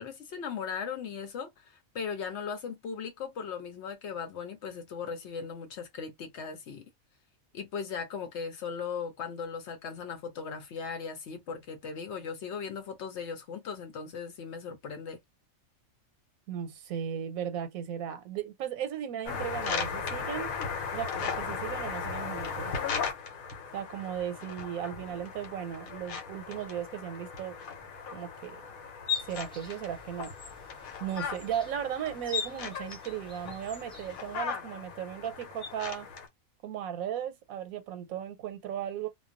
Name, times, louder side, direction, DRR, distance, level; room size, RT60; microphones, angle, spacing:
voice 1, 0.0-6.9 7.5-15.2, left 6 dB, 65° left, 0.8 m, -38 dB
voice 2, 16.5-20.5 20.9-22.7 23.7-27.5 28.1-28.6 29.3-30.3 31.0-36.1 36.6-39.1, right 9 dB, 90° right, 1.0 m, -36 dB
sound 1, 19.3-36.3, left 6 dB, 85° left, 1.1 m, -37 dB
sound 2, 29.1-34.4, equal, 5° left, 0.8 m, -53 dB
2.3 x 2.2 x 2.5 m
omnidirectional pair, 1.4 m